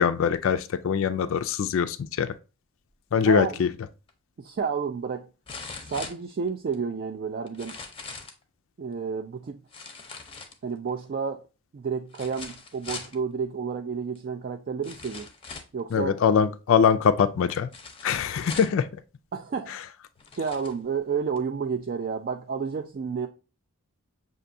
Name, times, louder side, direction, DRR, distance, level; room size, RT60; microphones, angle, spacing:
voice 1, 0.0-2.3 3.1-3.7 15.9-17.7 18.0-19.0 19.7-19.8, left 7 dB, 60° left, 0.3 m, -23 dB
voice 2, 3.2-3.7 4.4-5.3 5.8-7.8 8.8-9.6 10.6-11.4 11.7-15.3 15.7-16.2 19.3-19.7 20.4-23.3, right 6 dB, 40° right, 0.3 m, -30 dB
sound 1, 4.1-4.2 5.5-6.8 7.5-8.4 9.7-10.9 12.1-13.2 14.2-14.3 14.8-15.8 17.7-18.9 19.7-19.8 20.2-20.8 21.4-21.5, left 4 dB, 25° left, 0.6 m, -41 dB
6.4 x 2.6 x 2.6 m
head